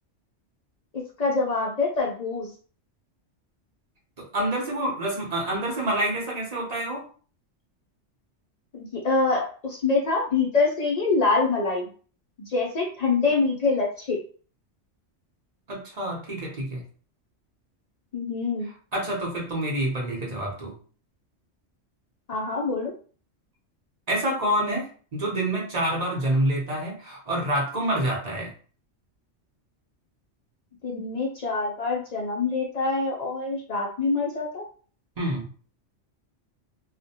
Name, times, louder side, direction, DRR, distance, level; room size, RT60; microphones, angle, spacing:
voice 1, 0.9-2.5 8.7-11.9 12.4-14.2 18.1-18.7 22.3-22.9 30.8-34.7, left 3 dB, 60° left, -2 dB, 0.4 m, -25 dB
voice 2, 4.2-7.1 15.7-16.8 18.9-20.7 24.1-28.5 35.2-35.5, right 1 dB, 40° right, -2 dB, 0.7 m, -27 dB
2.3 x 2.1 x 2.7 m, 0.40 s
omnidirectional pair, 1.3 m